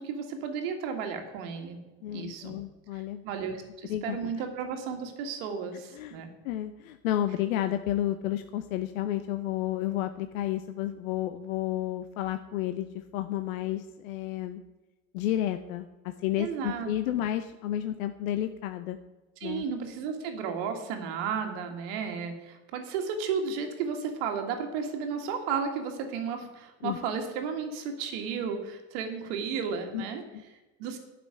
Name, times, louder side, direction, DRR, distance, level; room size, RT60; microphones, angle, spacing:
voice 1, 0.0-1.8 2.1-2.6 2.9-6.3 16.4-17.2 19.4-30.2 30.5-31.0, right 6 dB, 45° right, 5 dB, 1.8 m, -33 dB
voice 2, 2.0-3.2 3.9-4.2 5.9-6.2 6.4-14.6 15.1-15.9 16.2-19.0 19.4-19.6 26.8-27.0 29.9-30.0 30.3-30.4, left 12 dB, 80° left, 8 dB, 0.9 m, -31 dB
11.5 x 6.1 x 8.9 m, 1.1 s
supercardioid pair, 175°, 40 cm